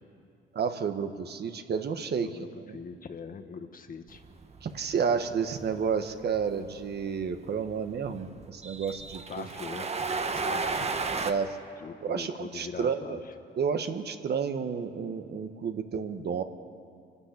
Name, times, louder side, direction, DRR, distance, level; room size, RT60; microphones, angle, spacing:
voice 1, 0.5-2.3 2.6-2.8 4.6-9.5 11.2-11.6 12.0-13.2 13.6-16.4, right 6 dB, 55° right, 7 dB, 1.4 m, -31 dB
voice 2, 2.2-4.2 9.3-9.9 10.3-10.9 11.8-13.3, left 5 dB, 45° left, 7 dB, 1.6 m, -42 dB
sound 1, 4.1-11.3, right 4 dB, 30° right, 1.3 m, -34 dB
27.0 x 12.5 x 8.4 m, 2.3 s
cardioid pair, 90°, 20 cm